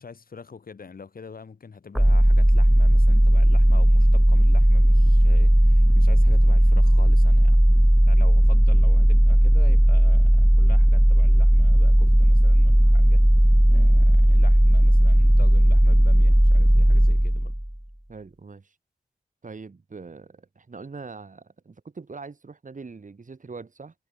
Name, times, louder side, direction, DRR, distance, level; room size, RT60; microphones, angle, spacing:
voice 1, 0.0-7.6 8.1-13.2 13.7-17.5, left 5 dB, 75° left, 6.3 m, -43 dB
sound 1, 1.9-17.7, equal, 5° right, 0.3 m, -16 dB
voice 2, 13.7-14.0 18.1-18.8 19.4-23.9, right 4 dB, 60° right, 7.4 m, -42 dB
wide cardioid pair, 70°, 15 cm